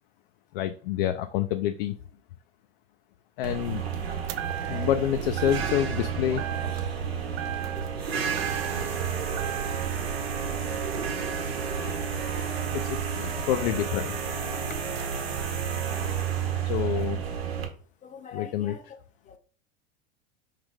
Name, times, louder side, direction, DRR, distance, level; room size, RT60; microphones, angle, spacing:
voice 1, 0.5-2.0 3.4-3.8 4.7-6.4 11.8-12.2 12.7-14.2 16.7-17.2 18.3-18.9, left 12 dB, 65° left, 8 dB, 0.4 m, -28 dB
sound 1, 3.4-17.7, right 7 dB, 80° right, 0.9 m, -31 dB
sound 2, 4.3-5.0 5.4-6.0 6.4-7.1 7.4-9.0 9.4-10.0, right 12 dB, 40° right, 0.4 m, -37 dB
voice 2, 14.5-14.8 16.7-17.1 18.0-18.8 19.3-19.4, left 6 dB, 25° left, 7 dB, 0.7 m, -43 dB
4.8 x 2.6 x 3.5 m, 0.43 s
hypercardioid pair, 90°, 30 cm